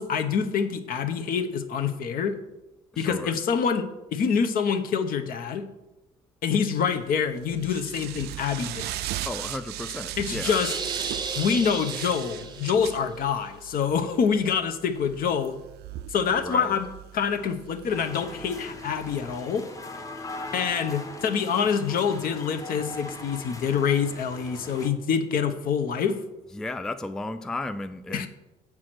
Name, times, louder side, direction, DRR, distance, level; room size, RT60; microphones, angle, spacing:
voice 1, 0.0-2.3 3.0-5.7 6.4-8.9 10.2-10.7 11.3-15.6 16.1-16.9 17.1-19.7 20.5-26.2 28.1-28.3, left 6 dB, 60° left, 8 dB, 0.9 m, -26 dB
voice 2, 2.9-3.4 9.3-10.6 16.4-16.8 26.5-28.3, left 2 dB, 5° left, 10 dB, 0.3 m, -34 dB
sound 1, 6.9-19.4, right 13 dB, 75° right, 0.4 m, -38 dB
sound 2, 10.4-12.9, right 5 dB, 25° right, 0.7 m, -34 dB
sound 3, 17.9-24.9, left 2 dB, 20° left, 0.8 m, -40 dB
7.5 x 4.8 x 6.0 m, 0.99 s
cardioid pair, 110°, 17 cm